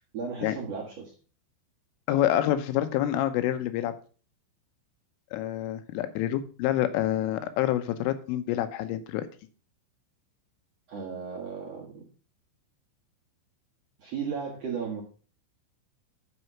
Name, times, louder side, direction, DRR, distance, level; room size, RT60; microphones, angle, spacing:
voice 1, 0.1-1.1 10.9-12.0 14.0-15.0, right 6 dB, 70° right, -2 dB, 1.5 m, -35 dB
voice 2, 2.1-3.9 5.3-9.3, left 12 dB, 85° left, 11 dB, 3.4 m, -27 dB
9.7 x 5.5 x 5.7 m, 0.39 s
omnidirectional pair, 5.6 m